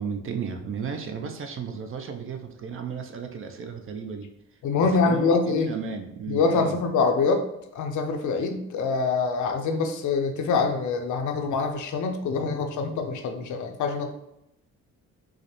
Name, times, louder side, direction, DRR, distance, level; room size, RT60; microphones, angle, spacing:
voice 1, 0.0-4.3 5.1-6.8, right 6 dB, 45° right, 5 dB, 0.5 m, -34 dB
voice 2, 4.6-5.7 6.3-7.4 7.7-14.1, left 4 dB, 70° left, 5 dB, 0.6 m, -25 dB
4.7 x 2.1 x 3.0 m, 0.83 s
cardioid pair, 90°, 30 cm